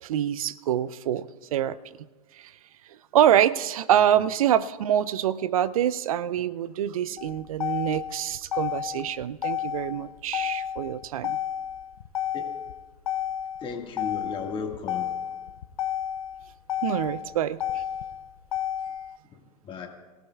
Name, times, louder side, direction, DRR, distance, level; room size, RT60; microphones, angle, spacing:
voice 1, 0.0-1.8 2.4-2.5 3.1-11.4 16.8-17.8, right 10 dB, 65° right, 18 dB, 0.5 m, -25 dB
Motor vehicle (road), 7.2-19.2, left 10 dB, 70° left, 0.7 m, -32 dB
voice 2, 13.6-15.1 19.3-19.9, left 5 dB, 25° left, 2 dB, 1.8 m, -35 dB
23.0 x 16.0 x 2.3 m, 1.3 s
figure-of-eight pair, 95°, 19 cm